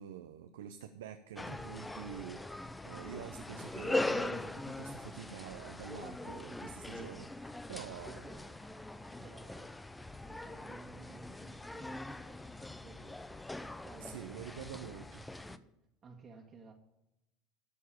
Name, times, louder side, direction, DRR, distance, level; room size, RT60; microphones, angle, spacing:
voice 1, 0.0-8.3 14.0-15.2, right 9 dB, 75° right, 0.7 m, -47 dB
sound 1, 1.4-15.6, left 2 dB, 10° left, 0.6 m, -41 dB
voice 2, 2.8-3.2 7.9-8.7 9.2-9.8 10.2-13.4 13.8-14.4 15.4-15.7 16.0-16.7, right 4 dB, 35° right, 1.7 m, -55 dB
13.5 x 4.7 x 8.7 m
hypercardioid pair, 80°, 0 cm